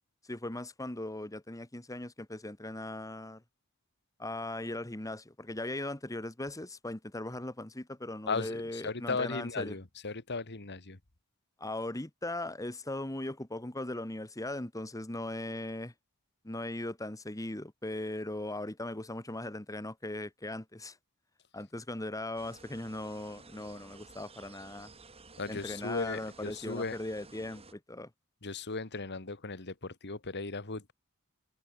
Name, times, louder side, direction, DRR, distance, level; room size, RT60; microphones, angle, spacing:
voice 1, 0.3-3.4 4.2-9.7 11.6-15.9 16.4-21.0 21.5-24.9 25.5-28.1, left 1 dB, 15° left, 1.5 m, -39 dB
voice 2, 8.3-11.0 25.4-27.0 28.4-30.9, left 4 dB, 55° left, 1.9 m, -36 dB
sound 1, 22.4-27.7, right 3 dB, 30° right, 3.4 m, -54 dB
head